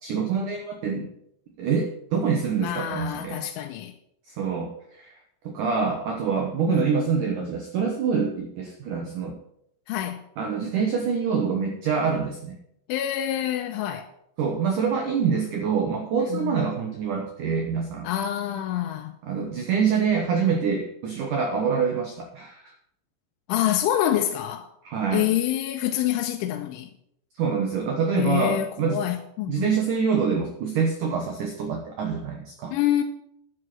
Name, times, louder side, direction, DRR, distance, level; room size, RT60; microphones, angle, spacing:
voice 1, 0.0-1.1 1.6-3.4 4.3-5.1 5.4-9.4 10.4-12.6 14.4-18.1 19.2-22.7 24.8-25.3 27.4-29.1 29.5-32.8, right 6 dB, 85° right, 1.8 m, -26 dB
voice 2, 2.6-3.9 6.7-6.8 9.9-10.2 12.9-14.1 16.3-16.6 18.0-19.1 23.5-24.7 25.1-26.9 28.1-29.7 32.7-33.0, left 12 dB, 85° left, 3.1 m, -26 dB
11.0 x 7.8 x 6.1 m
omnidirectional pair, 5.5 m